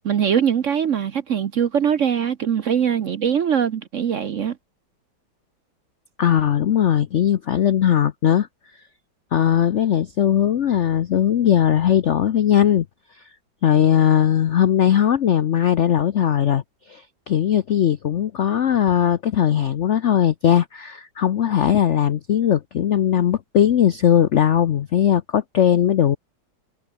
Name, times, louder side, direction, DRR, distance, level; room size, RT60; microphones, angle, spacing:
voice 1, 0.0-4.5, right 8 dB, 55° right, 0.9 m, -22 dB
voice 2, 6.2-8.5 9.3-12.8 13.6-16.6 16.9-26.2, left 10 dB, 90° left, 0.6 m, -19 dB
omnidirectional pair, 2.1 m